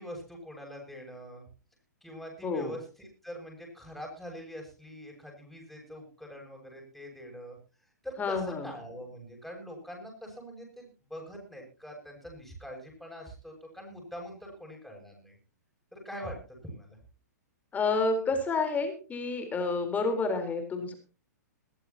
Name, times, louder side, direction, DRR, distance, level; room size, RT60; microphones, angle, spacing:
voice 1, 0.0-1.4 2.0-7.6 8.0-15.4 15.9-17.0, equal, ahead, -1 dB, 7.9 m, -44 dB
voice 2, 2.4-2.7 8.2-8.7 17.7-20.9, left 3 dB, 15° left, 7 dB, 4.2 m, -29 dB
21.5 x 14.5 x 3.0 m, 0.37 s
hypercardioid pair, 125°, 10 cm